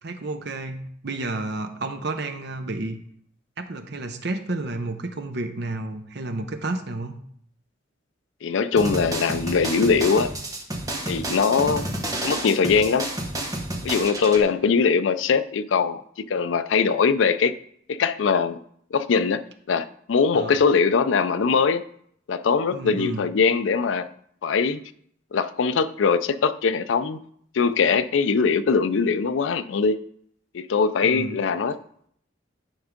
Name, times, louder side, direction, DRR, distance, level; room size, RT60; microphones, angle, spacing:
voice 1, 0.0-3.0 3.6-7.2 11.5-11.8 20.3-20.6 22.7-23.3 31.0-31.4, right 2 dB, 60° right, 7 dB, 0.8 m, -31 dB
voice 2, 8.4-10.3 11.1-11.9 12.2-13.1 13.8-16.0 16.3-17.5 17.9-18.6 18.9-19.4 19.7-21.8 22.3-24.1 24.4-24.8 25.3-27.2 27.5-30.0 30.5-31.8, left 5 dB, 80° left, 13 dB, 0.4 m, -21 dB
sound 1, 8.8-14.4, right 1 dB, 20° right, 1.1 m, -30 dB
10.0 x 3.5 x 5.1 m, 0.66 s
head